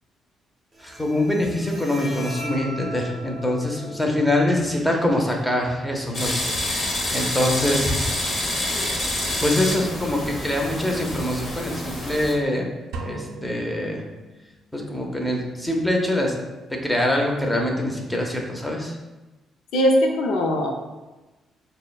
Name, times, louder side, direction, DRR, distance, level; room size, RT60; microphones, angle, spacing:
Bowed string instrument, 0.7-7.7, equal, 25° right, 0.8 m, -40 dB
voice 1, 0.8-6.4 6.7-7.9 9.4-12.7 13.0-14.0 14.7-16.3 16.7-19.0, left 1 dB, 5° left, 0 dB, 0.7 m, -24 dB
sound 1, 6.1-12.3, left 1 dB, 35° left, 1.0 m, -27 dB
sound 2, 12.9-14.7, right 2 dB, 85° right, 0.5 m, -37 dB
voice 2, 19.7-20.7, equal, 80° left, 2 dB, 0.5 m, -20 dB
6.4 x 2.1 x 2.3 m, 1.1 s
cardioid pair, 90°, 0 cm